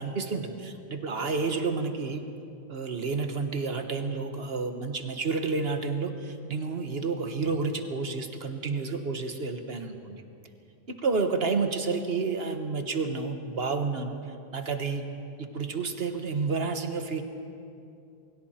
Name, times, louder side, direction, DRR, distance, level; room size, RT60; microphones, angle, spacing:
voice 1, 0.0-2.2 2.7-10.2 10.9-14.2 14.5-15.0 15.4-17.2, right 4 dB, 70° right, 6 dB, 1.6 m, -30 dB
28.5 x 22.0 x 4.4 m, 2.6 s
omnidirectional pair, 1.1 m